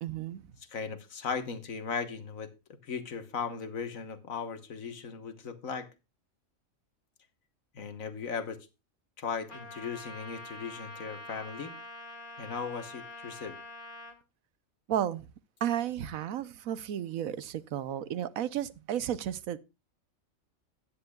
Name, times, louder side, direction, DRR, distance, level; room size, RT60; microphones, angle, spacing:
voice 1, 0.0-0.4 14.9-15.3 15.6-19.6, right 10 dB, 85° right, 1.2 m, -33 dB
voice 2, 0.7-2.5 2.8-5.9 7.7-8.7 9.2-11.7 12.4-13.6, left 5 dB, 75° left, 1.7 m, -37 dB
Trumpet, 9.5-14.2, left 1 dB, 35° left, 2.3 m, -45 dB
15.5 x 9.8 x 2.3 m
omnidirectional pair, 1.4 m